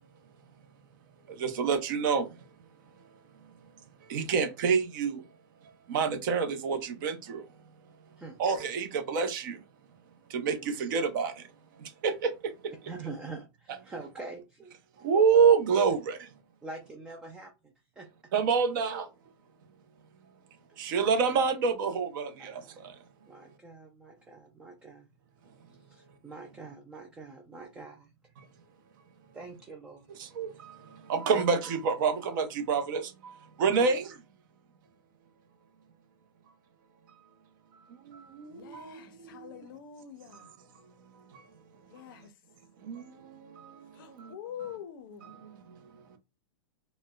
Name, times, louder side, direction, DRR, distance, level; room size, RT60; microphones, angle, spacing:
voice 1, 1.4-2.2 4.1-5.2 5.9-7.4 8.4-9.5 10.3-11.3 12.0-12.3 15.0-16.2 18.3-19.1 20.8-22.5 30.4-30.5 31.1-33.0 33.6-34.1 38.4-38.8 42.9-43.0, right 5 dB, 45° right, 0.7 m, -26 dB
voice 2, 12.9-14.7 16.6-18.1 20.7-20.9 22.4-22.8 23.3-25.1 25.8-28.3 29.3-30.3 31.3-31.4 33.6-33.9, right 3 dB, 5° right, 0.3 m, -45 dB
voice 3, 38.5-40.5 41.9-42.3 44.0-45.3, left 9 dB, 45° left, 0.6 m, -45 dB
4.1 x 2.1 x 2.3 m
supercardioid pair, 165°, 15 cm